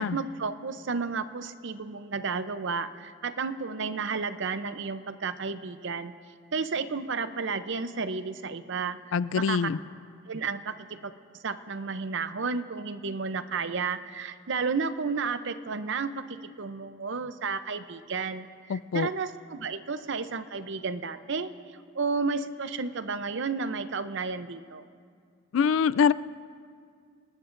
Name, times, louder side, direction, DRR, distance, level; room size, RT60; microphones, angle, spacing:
voice 1, 0.0-6.1 6.5-9.7 10.3-11.1 11.4-24.9, right 4 dB, 60° right, 11 dB, 0.6 m, -32 dB
voice 2, 9.1-9.8 18.7-19.1 25.5-26.1, left 6 dB, 65° left, 18 dB, 0.3 m, -24 dB
29.0 x 19.0 x 2.6 m, 2.2 s
head